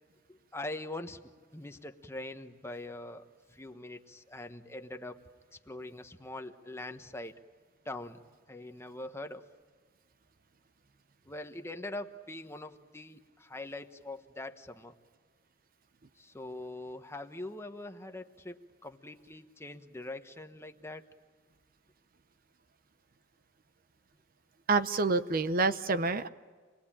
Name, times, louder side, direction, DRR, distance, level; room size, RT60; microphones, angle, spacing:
voice 1, 0.3-5.2 5.5-7.4 7.8-8.2 8.5-9.4 11.3-14.9 16.2-21.0, left 2 dB, 15° left, 6 dB, 1.1 m, -43 dB
voice 2, 24.7-26.3, right 3 dB, 50° right, 11 dB, 0.8 m, -27 dB
27.5 x 21.0 x 8.8 m, 1.5 s
head